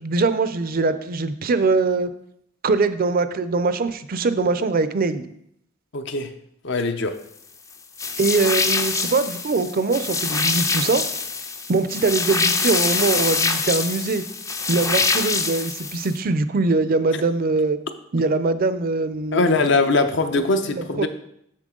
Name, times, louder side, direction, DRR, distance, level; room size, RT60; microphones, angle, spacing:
voice 1, 0.0-2.1 2.6-5.3 8.2-11.0 11.7-14.2 14.7-17.8 18.1-19.6 20.7-21.1, right 3 dB, 50° right, 13 dB, 0.5 m, -22 dB
voice 2, 5.9-6.3 6.6-7.1 19.3-21.1, left 3 dB, 65° left, 8 dB, 0.7 m, -21 dB
sound 1, 8.0-16.2, left 4 dB, 15° left, 0.4 m, -24 dB
7.4 x 6.8 x 3.8 m, 0.72 s
head